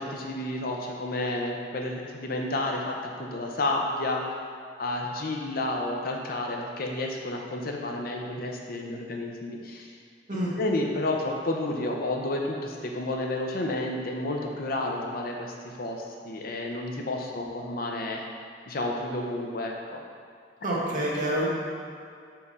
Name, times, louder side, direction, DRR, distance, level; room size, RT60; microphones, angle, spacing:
voice 1, 0.0-4.2 4.8-9.9 10.6-18.2 18.7-20.0, left 2 dB, 55° left, 1 dB, 0.7 m, -31 dB
voice 2, 20.6-21.4, right 1 dB, 45° right, -6 dB, 1.5 m, -27 dB
4.9 x 4.6 x 5.5 m, 2.3 s
head